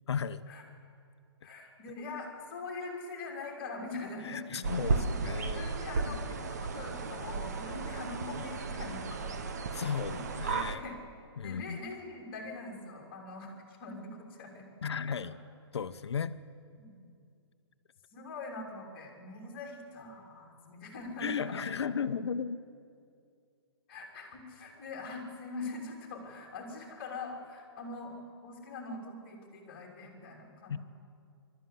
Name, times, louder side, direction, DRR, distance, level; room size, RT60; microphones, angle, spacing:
voice 1, 0.1-0.4 4.2-5.7 6.1-6.2 8.7-8.9 9.7-10.8 11.4-11.8 14.8-15.3 15.7-16.3 21.2-22.6 30.7-30.8, left 6 dB, 70° left, 12 dB, 0.9 m, -35 dB
voice 2, 1.4-5.0 5.5-9.3 9.8-11.0 11.4-14.7 15.1-15.2 16.8-17.0 18.1-21.6 22.1-22.2 23.9-28.1 28.4-30.9, left 3 dB, 25° left, 0 dB, 3.1 m, -43 dB
sound 1, 4.6-10.8, right 4 dB, 40° right, 0.9 m, -34 dB
22.5 x 13.0 x 9.3 m, 2.3 s
hypercardioid pair, 180°, 14 cm